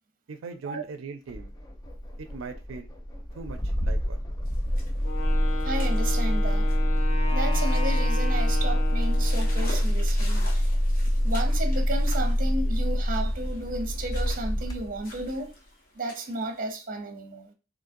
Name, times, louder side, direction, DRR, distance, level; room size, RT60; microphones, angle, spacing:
voice 1, 0.3-1.5 2.2-2.9 3.3-4.2, right 4 dB, 85° right, 0.4 m, -40 dB
Engine starting, 1.3-15.4, equal, 20° left, 0.5 m, -25 dB
sound 1, 4.5-16.7, left 1 dB, 45° left, 1.3 m, -47 dB
Wind instrument woodwind instrument, 5.0-9.9, left 3 dB, 80° left, 0.7 m, -36 dB
voice 2, 5.6-6.7 7.3-10.6 11.2-15.5 15.9-17.5, right 2 dB, 45° right, 0.7 m, -33 dB
3.8 x 3.0 x 2.5 m
head